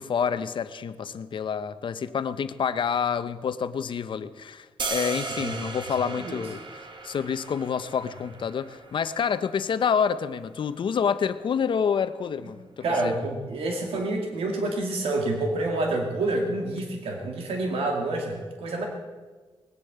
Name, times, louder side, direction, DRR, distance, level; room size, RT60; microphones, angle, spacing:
voice 1, 0.0-13.1, left 7 dB, 60° left, 12 dB, 0.8 m, -28 dB
sound 1, 4.8-10.9, right 4 dB, 55° right, 1.7 m, -37 dB
voice 2, 6.2-6.5 12.8-18.9, right 2 dB, 85° right, 2 dB, 2.3 m, -28 dB
20.0 x 8.4 x 7.9 m, 1.3 s
wide cardioid pair, 120°, 10 cm